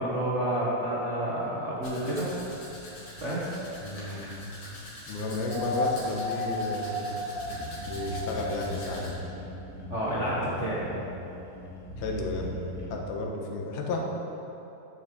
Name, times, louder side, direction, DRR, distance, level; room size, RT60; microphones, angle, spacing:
voice 1, 0.0-2.3 3.2-3.5 9.9-10.8, right 1 dB, 75° right, -8 dB, 0.6 m, -29 dB
Domestic sounds home sounds, 1.8-9.1, left 1 dB, 45° left, 3.0 m, -44 dB
voice 2, 3.8-4.4 5.1-7.2 7.9-9.2 12.0-12.5 12.9-14.0, left 2 dB, 85° left, 0 dB, 3.0 m, -32 dB
sound 1, 5.4-8.7 10.1-10.2, left 1 dB, 35° right, 1.6 m, -33 dB
sound 2, 7.3-12.9, left 1 dB, 5° right, 0.3 m, -40 dB
8.8 x 7.2 x 6.9 m, 3.0 s
omnidirectional pair, 4.2 m